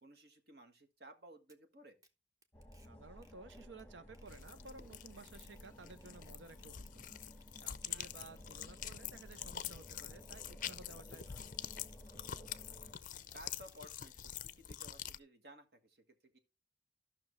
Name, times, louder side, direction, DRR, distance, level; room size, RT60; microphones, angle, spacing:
voice 1, 0.0-2.0 7.9-8.5 10.9-11.2 12.4-12.9 13.3-16.4, right 1 dB, 60° right, 1.6 m, -58 dB
sound 1, 1.5-1.6 2.0-2.1 2.4-2.9 3.2-3.8 4.1-14.1, right 2 dB, 20° right, 0.9 m, -70 dB
sound 2, 2.5-12.9, equal, 10° left, 1.1 m, -56 dB
voice 2, 2.8-7.2 7.6-11.6, right 3 dB, 85° right, 0.7 m, -55 dB
sound 3, 4.3-15.2, left 10 dB, 45° left, 0.5 m, -46 dB
14.5 x 5.9 x 3.2 m
head